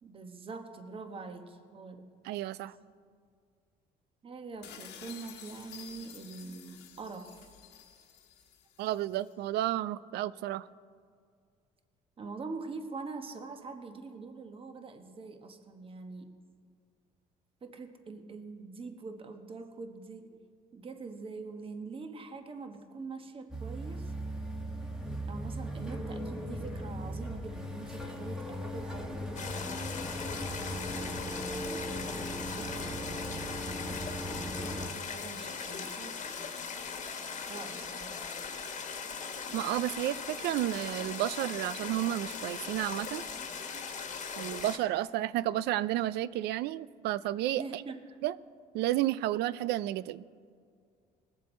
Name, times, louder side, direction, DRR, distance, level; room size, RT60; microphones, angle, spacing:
voice 1, 0.0-2.1 4.2-7.3 12.2-16.4 17.6-20.4 20.7-24.1 25.3-30.0 30.5-33.0 33.7-34.2 34.6-36.2 37.5-38.2 47.6-48.2, right 4 dB, 30° right, 6 dB, 1.2 m, -44 dB
voice 2, 2.2-2.7 8.8-10.7 39.5-43.2 44.4-47.8 48.2-48.3 48.7-50.2, right 14 dB, 80° right, 18 dB, 0.4 m, -31 dB
sound 1, 4.6-9.3, left 9 dB, 80° left, 1.3 m, -51 dB
sound 2, 23.5-34.9, equal, 5° right, 1.4 m, -38 dB
sound 3, 29.4-44.8, left 5 dB, 45° left, 1.4 m, -39 dB
20.0 x 7.3 x 4.3 m, 2.1 s
cardioid pair, 110°, 17 cm